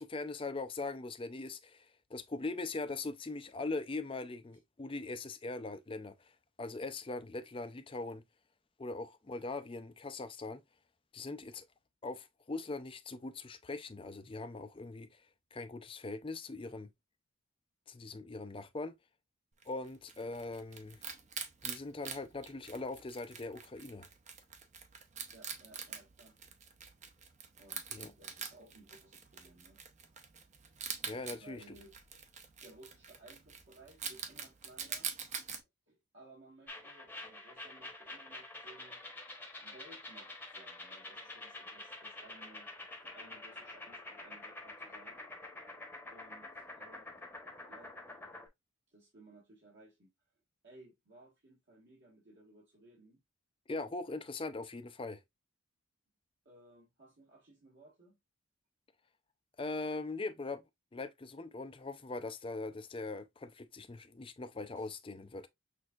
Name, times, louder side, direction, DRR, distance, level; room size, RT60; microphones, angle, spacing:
voice 1, 0.0-6.3 6.6-8.2 8.8-10.6 11.1-11.7 12.0-15.2 15.5-16.9 17.9-18.9 19.7-21.0 21.6-24.1 27.9-28.1 31.0-31.8 53.7-55.2 59.6-60.6 60.9-65.5, left 3 dB, 25° left, 0.4 m, -41 dB
Wild animals, 19.6-35.6, right 7 dB, 30° right, 0.6 m, -45 dB
voice 2, 25.3-26.4 27.6-30.3 31.3-31.9 32.6-35.2 35.9-39.0 39.6-42.7 43.0-45.2 46.1-47.1 47.7-47.9 48.9-50.1 50.6-53.2 56.4-58.2 64.7-64.9, right 2 dB, 55° right, 1.5 m, -59 dB
sound 1, 36.7-48.5, left 2 dB, 10° left, 0.9 m, -48 dB
6.2 x 2.7 x 2.4 m
head